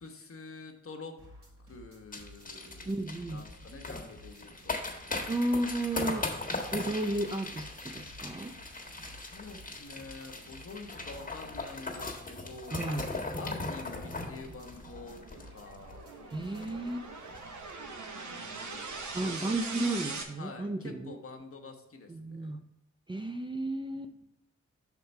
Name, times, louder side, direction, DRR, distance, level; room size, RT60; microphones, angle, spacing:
voice 1, 0.0-1.2 1.7-3.0 3.3-4.9 5.9-6.3 9.1-13.0 13.4-16.1 18.3-19.5 20.4-22.5 23.9-24.0, left 3 dB, 50° left, 4 dB, 1.2 m, -47 dB
sound 1, 1.2-16.8, equal, 45° right, 2.5 m, -55 dB
sound 2, 2.1-15.9 16.2-16.3 16.5-16.9 17.2-17.4, left 2 dB, 25° left, 1.5 m, -39 dB
voice 2, 2.9-3.4 5.3-6.3 6.7-8.6 12.7-13.1 16.3-17.1 19.1-21.2 22.1-22.6 23.1-24.1, right 1 dB, 15° right, 6 dB, 0.5 m, -33 dB
sound 3, 13.9-20.2, right 4 dB, 75° right, 1.1 m, -42 dB
5.7 x 4.4 x 5.4 m, 0.84 s
cardioid pair, 55°, 30 cm